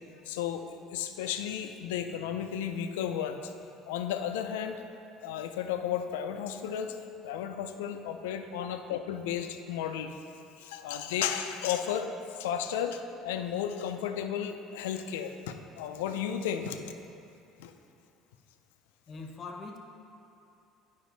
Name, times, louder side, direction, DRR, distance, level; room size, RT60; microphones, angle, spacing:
voice 1, 0.3-0.6 0.9-3.5 3.9-4.8 5.2-7.0 7.2-10.1 10.6-12.1 12.4-16.9 17.6-17.7, left 9 dB, 90° left, 7 dB, 0.4 m, -33 dB
voice 2, 19.1-19.8, left 3 dB, 40° left, 3 dB, 1.0 m, -42 dB
9.4 x 5.3 x 4.0 m, 2.7 s
supercardioid pair, 85°, 0 cm